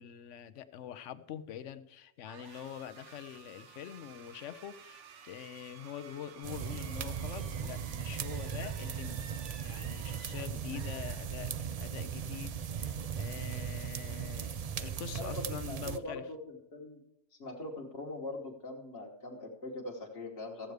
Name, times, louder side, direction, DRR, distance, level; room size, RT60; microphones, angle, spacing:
voice 1, 0.0-9.3 9.6-16.2, left 10 dB, 85° left, 12 dB, 1.0 m, -45 dB
sound 1, 2.2-11.8, right 6 dB, 75° right, 1.2 m, -54 dB
sound 2, 6.4-16.0, right 7 dB, 55° right, 0.4 m, -38 dB
voice 2, 15.2-17.0 17.3-20.7, left 2 dB, 60° left, -2 dB, 1.6 m, -42 dB
14.0 x 7.9 x 4.8 m, 0.84 s
omnidirectional pair, 1.2 m